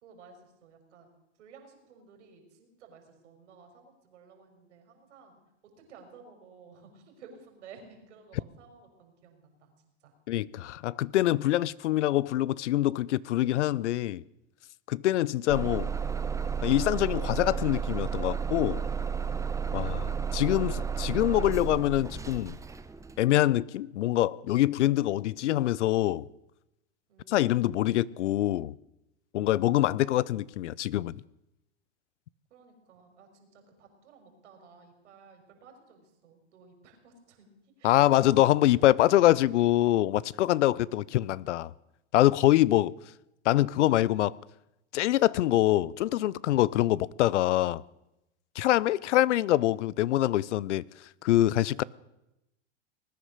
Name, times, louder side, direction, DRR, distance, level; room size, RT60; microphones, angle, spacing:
voice 1, 0.0-9.7 10.0-10.1 27.1-27.5 32.5-38.5 40.7-40.9, right 5 dB, 80° right, 4.8 m, -54 dB
voice 2, 10.3-14.2 14.9-15.9 16.6-18.8 19.7-22.6 23.2-26.3 27.3-28.8 29.3-31.2 37.8-41.7 42.1-42.9 43.4-44.4 44.9-47.8 48.6-50.8 51.2-51.8, left 14 dB, 85° left, 0.6 m, -25 dB
Bus / Engine starting, 15.5-23.2, right 6 dB, 10° right, 0.8 m, -32 dB
19.5 x 10.0 x 6.5 m
hypercardioid pair, 110°, 35 cm